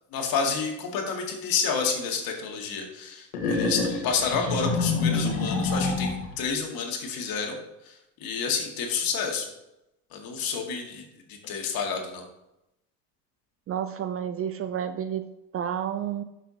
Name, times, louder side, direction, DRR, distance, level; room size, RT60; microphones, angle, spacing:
voice 1, 0.1-7.6 8.2-9.5 10.1-11.0 11.3-12.2, left 5 dB, 50° left, 2 dB, 2.1 m, -29 dB
sound 1, 3.3-6.4, left 3 dB, 90° left, 1.7 m, -27 dB
voice 2, 13.7-16.2, right 9 dB, 30° right, 10 dB, 0.5 m, -31 dB
11.5 x 6.2 x 2.9 m, 0.89 s
hypercardioid pair, 85°, 44 cm